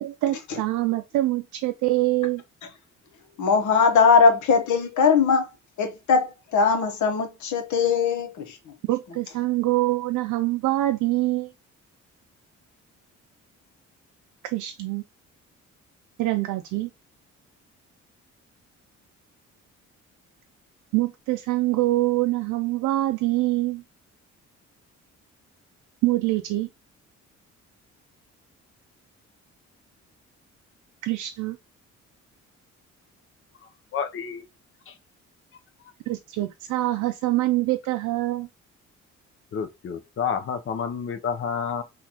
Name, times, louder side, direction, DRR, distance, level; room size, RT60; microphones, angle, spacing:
voice 1, 0.0-2.4 8.9-11.5 14.4-15.0 16.2-16.9 20.9-23.8 26.0-26.7 31.0-31.6 36.1-38.5, right 17 dB, 85° right, 0.5 m, -25 dB
voice 2, 3.4-5.5 5.8-8.6, left 5 dB, 75° left, 1.0 m, -20 dB
voice 3, 33.9-34.4 34.9-35.0 39.5-41.8, left 7 dB, 45° left, 0.7 m, -29 dB
3.8 x 2.5 x 2.9 m
cardioid pair, 90°, 30 cm